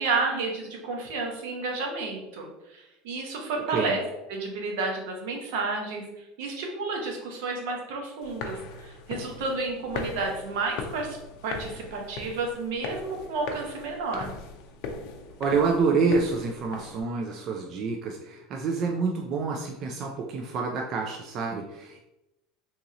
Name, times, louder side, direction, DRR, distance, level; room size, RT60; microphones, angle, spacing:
voice 1, 0.0-4.0 4.3-11.2 11.4-14.3, right 3 dB, 75° right, 1 dB, 0.9 m, -31 dB
sound 1, 8.2-17.0, left 4 dB, 55° left, 0.5 m, -39 dB
voice 2, 15.4-22.0, right 4 dB, 35° right, 1 dB, 0.4 m, -27 dB
2.9 x 2.7 x 3.7 m, 0.94 s
cardioid pair, 165°, 0 cm